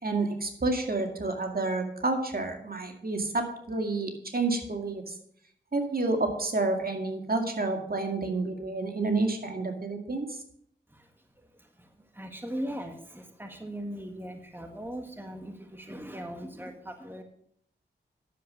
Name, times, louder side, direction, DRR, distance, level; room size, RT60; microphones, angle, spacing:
voice 1, 0.0-5.2 5.7-10.4, right 3 dB, 50° right, 4 dB, 2.2 m, -29 dB
voice 2, 10.9-17.2, equal, 10° right, 5 dB, 1.6 m, -40 dB
10.0 x 7.4 x 6.5 m, 0.67 s
cardioid pair, 45°, 19 cm